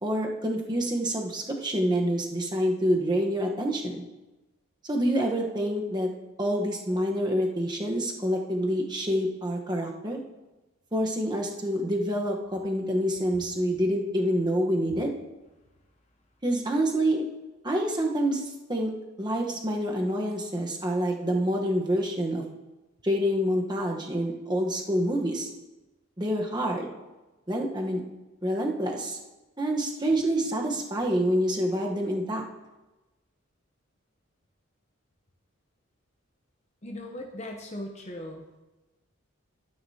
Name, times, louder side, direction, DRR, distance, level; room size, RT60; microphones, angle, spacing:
voice 1, 0.0-4.0 4.8-6.1 6.4-10.2 10.9-15.2 16.4-17.2 17.6-18.9 19.2-22.4 23.0-25.5 26.2-26.9 27.5-28.0 28.4-29.2 29.6-32.4, equal, 20° right, 1 dB, 1.1 m, -27 dB
voice 2, 36.8-38.5, left 1 dB, 30° left, 2 dB, 0.8 m, -38 dB
12.5 x 9.8 x 2.8 m, 1.1 s
head